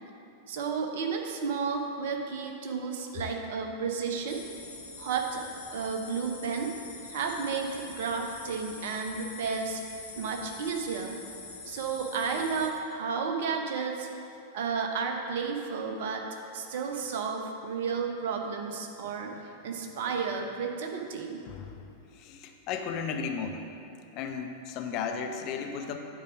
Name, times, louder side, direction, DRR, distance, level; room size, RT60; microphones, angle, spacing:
voice 1, 0.5-4.4 5.0-5.5 5.7-6.7 7.1-9.8 10.2-11.2 11.7-14.1 14.5-16.3 16.5-21.4, right 5 dB, 55° right, 3 dB, 0.9 m, -32 dB
sound 1, 4.3-12.7, left 3 dB, 70° left, 1.4 m, -45 dB
voice 2, 21.4-21.9 22.1-23.7 24.1-26.0, left 6 dB, 40° left, 4 dB, 0.7 m, -35 dB
10.0 x 4.8 x 6.0 m, 2.6 s
figure-of-eight pair, 90°, 0 cm